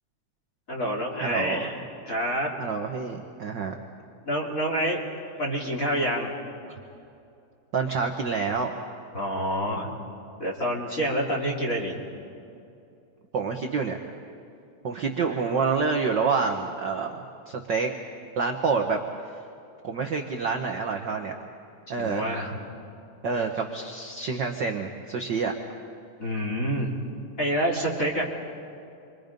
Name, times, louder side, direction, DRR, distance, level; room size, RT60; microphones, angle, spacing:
voice 1, 0.7-2.5 4.2-5.0 5.4-6.3 9.1-9.9 10.4-12.0 15.3-15.7 22.0-22.5 26.2-26.9 27.4-28.2, equal, 30° left, -2 dB, 2.6 m, -27 dB
voice 2, 1.2-1.7 2.6-3.7 7.7-8.7 13.3-14.0 14.8-17.9 18.4-19.0 19.8-21.4 21.9-22.3 23.2-25.5, right 5 dB, 70° right, 3 dB, 1.0 m, -27 dB
28.5 x 23.5 x 5.3 m, 2.6 s
omnidirectional pair, 3.6 m